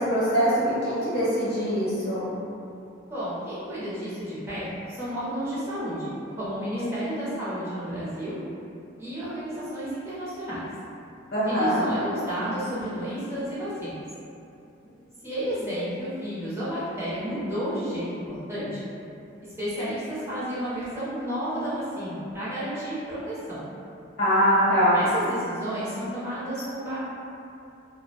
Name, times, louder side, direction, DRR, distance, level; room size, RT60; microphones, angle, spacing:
voice 1, 0.0-2.3 6.8-6.9 11.3-11.9 24.2-25.0, equal, 50° left, -9 dB, 0.8 m, -23 dB
voice 2, 3.1-8.4 9.0-10.6 11.5-14.0 15.2-18.8 19.6-23.6 24.9-27.0, equal, 15° right, -11 dB, 0.5 m, -31 dB
2.3 x 2.0 x 2.7 m, 2.7 s
head